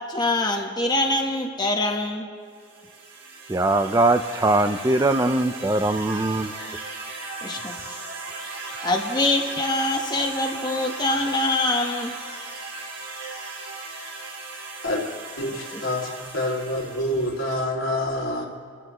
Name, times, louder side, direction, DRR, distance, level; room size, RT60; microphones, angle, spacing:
voice 1, 0.1-2.3 7.4-8.0 8.8-12.1, left 2 dB, 20° left, 2 dB, 1.0 m, -24 dB
sound 1, 2.5-17.6, right 3 dB, 70° right, 4.1 m, -37 dB
voice 2, 3.5-6.5, right 2 dB, 15° right, 9 dB, 0.4 m, -21 dB
voice 3, 15.4-18.4, left 1 dB, 80° left, -1 dB, 2.7 m, -27 dB
29.0 x 14.0 x 3.0 m, 2.2 s
head